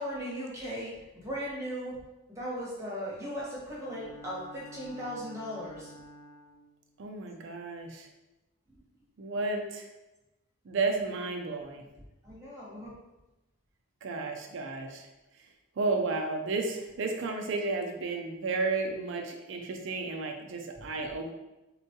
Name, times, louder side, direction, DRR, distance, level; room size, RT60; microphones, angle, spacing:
voice 1, 0.0-2.0 2.3-5.9 12.2-12.9, equal, 15° right, -6 dB, 0.8 m, -37 dB
Bowed string instrument, 3.7-6.7, right 1 dB, 75° left, 0.5 m, -49 dB
voice 2, 7.0-8.1 9.2-9.9 10.7-11.8 14.0-15.1 15.8-21.3, right 3 dB, 55° right, 3 dB, 0.4 m, -32 dB
3.6 x 2.2 x 2.8 m, 1.0 s
head